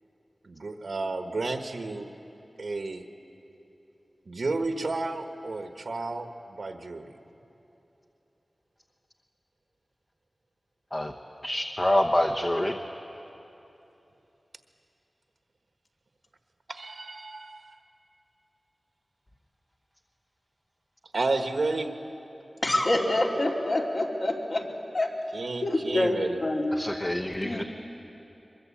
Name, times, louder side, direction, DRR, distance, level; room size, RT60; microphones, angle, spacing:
voice 1, 0.4-2.1 2.6-3.0 4.3-7.1 16.7-17.7 21.1-21.9 25.3-26.4 27.5-27.6, right 3 dB, 75° right, 7 dB, 1.3 m, -32 dB
voice 2, 11.4-12.8 26.7-27.6, left 1 dB, 25° left, 4 dB, 1.0 m, -26 dB
voice 3, 22.6-24.6 24.9-25.1 25.6-26.8 27.4-27.6, left 1 dB, 55° left, -1 dB, 2.9 m, -26 dB
22.5 x 22.0 x 8.6 m, 3.0 s
wide cardioid pair, 80°, 0 cm